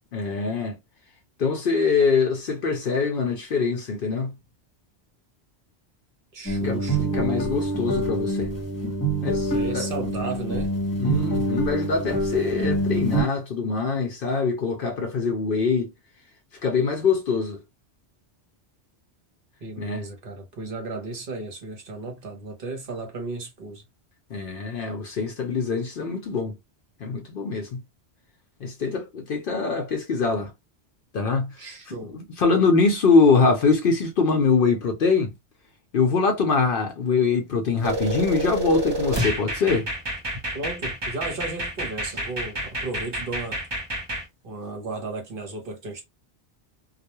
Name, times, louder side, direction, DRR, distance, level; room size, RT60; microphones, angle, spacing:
voice 1, 0.1-0.8 1.4-4.3 6.6-6.8 7.1-8.5 9.2-9.9 11.0-15.9 16.6-17.6 19.8-20.1 24.3-26.6 27.0-27.8 28.6-30.5 31.1-31.6 31.9-35.3 35.9-39.9, left 4 dB, 60° left, 0.7 m, -23 dB
voice 2, 6.3-7.2 9.5-10.7 19.6-23.8 31.6-32.2 40.5-43.6 44.4-46.0, right 3 dB, 55° right, 1.0 m, -34 dB
sound 1, 6.5-13.2, right 1 dB, 20° left, 0.9 m, -25 dB
sound 2, 37.8-44.2, right 1 dB, 25° right, 0.7 m, -29 dB
2.3 x 2.2 x 2.8 m
omnidirectional pair, 1.1 m